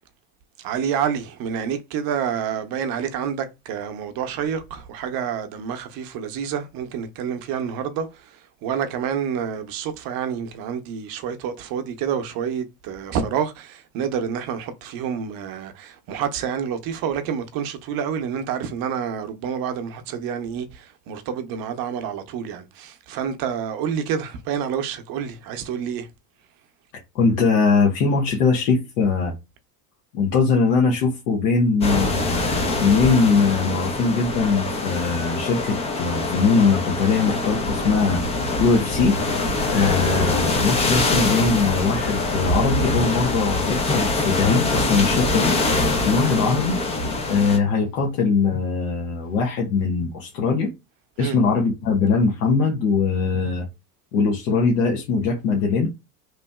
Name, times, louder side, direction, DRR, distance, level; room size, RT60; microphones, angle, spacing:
voice 1, 0.6-26.1 51.2-51.4, right 8 dB, 45° right, 0.7 m, -28 dB
voice 2, 27.1-29.3 30.1-38.2 38.6-39.2 39.7-45.5 46.0-46.8 47.3-50.7 51.2-53.7 54.1-55.9, left 4 dB, 75° left, 1.1 m, -21 dB
sound 1, 31.8-47.6, left 2 dB, 15° left, 0.4 m, -24 dB
3.1 x 2.6 x 2.2 m
hypercardioid pair, 100°, 49 cm